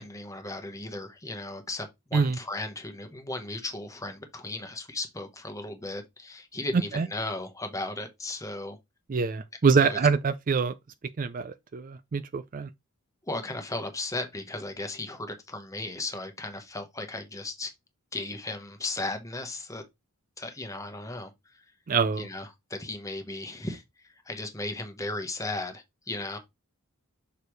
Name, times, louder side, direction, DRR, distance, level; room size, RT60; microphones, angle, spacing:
voice 1, 0.0-8.8 9.8-10.0 13.2-17.7 18.1-19.8 20.4-21.6 22.2-26.4, left 2 dB, 15° left, 1.1 m, -36 dB
voice 2, 6.7-7.1 9.1-10.7 11.2-12.7 21.9-22.3, right 5 dB, 40° right, 0.4 m, -25 dB
6.7 x 4.9 x 3.1 m
head